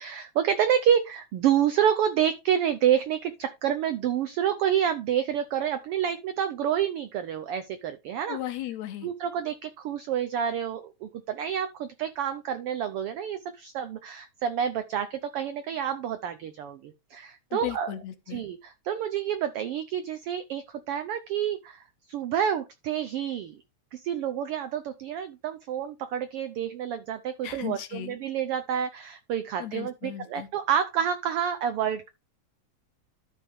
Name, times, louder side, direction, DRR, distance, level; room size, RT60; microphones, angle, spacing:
voice 1, 0.0-8.4 9.0-17.9 18.3-21.8 22.1-23.6 23.9-32.1, right 9 dB, 90° right, 1.2 m, -28 dB
voice 2, 8.3-9.1 17.5-18.4 27.4-28.2 29.6-30.5, left 12 dB, 70° left, 2.1 m, -36 dB
12.5 x 5.5 x 3.2 m
omnidirectional pair, 3.4 m